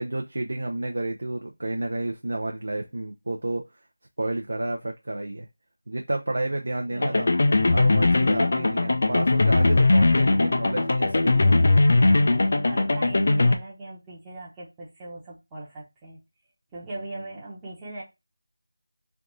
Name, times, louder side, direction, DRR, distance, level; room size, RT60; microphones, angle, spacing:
voice 1, 0.0-3.6 4.2-5.5 5.9-7.3 7.7-11.7 16.8-17.3, right 2 dB, 65° right, 2 dB, 0.5 m, -31 dB
voice 2, 6.9-7.2 8.5-8.9 12.7-16.2 16.7-18.0, right 2 dB, 10° right, -7 dB, 0.9 m, -39 dB
sound 1, 7.0-13.6, left 2 dB, 45° left, 0.5 m, -20 dB
3.4 x 2.5 x 4.0 m, 0.23 s
figure-of-eight pair, 175°, 0 cm